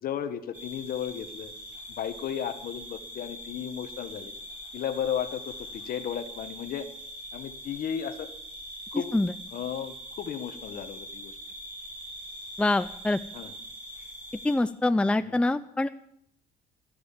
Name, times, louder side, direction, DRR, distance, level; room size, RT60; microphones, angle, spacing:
voice 1, 0.0-1.5 1.9-4.3 4.7-6.9 7.3-8.3 8.9-9.1 9.5-11.4 13.3-13.5 15.3-15.4, left 9 dB, 60° left, 10 dB, 1.6 m, -34 dB
sound 1, 0.5-14.6, equal, 10° right, 6.2 m, -43 dB
voice 2, 12.6-13.2 14.4-15.9, left 2 dB, 5° left, 12 dB, 0.5 m, -25 dB
13.0 x 12.0 x 7.4 m, 0.68 s
cardioid pair, 110°, 17 cm